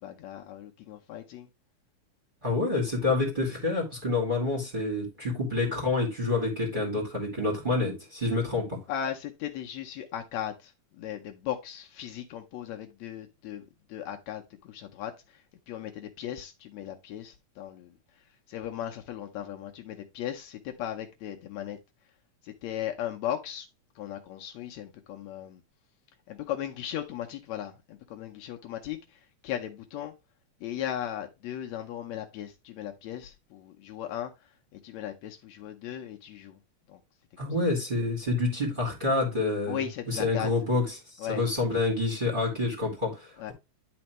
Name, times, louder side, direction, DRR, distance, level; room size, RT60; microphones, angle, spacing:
voice 1, 0.0-1.5 8.9-17.9 18.5-21.8 22.4-23.7 24.0-25.6 26.3-30.1 30.6-34.3 34.7-36.6 36.9-37.0 39.7-40.5 41.2-41.4 43.4-43.5, left 10 dB, 75° left, 1.9 m, -37 dB
voice 2, 2.4-8.8 37.4-39.8 40.1-40.8 41.3-43.5, left 3 dB, 20° right, 2.3 m, -28 dB
10.5 x 4.4 x 3.0 m
omnidirectional pair, 3.3 m